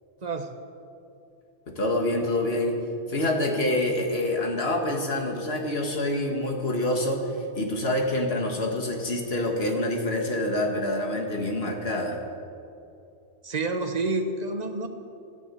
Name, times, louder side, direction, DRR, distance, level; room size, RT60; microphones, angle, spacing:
voice 1, 1.7-2.8 3.1-12.2, left 1 dB, 60° left, 2 dB, 2.0 m, -26 dB
voice 2, 13.4-14.9, right 3 dB, 40° right, 6 dB, 1.2 m, -28 dB
13.0 x 10.5 x 8.3 m, 2.7 s
omnidirectional pair, 1.2 m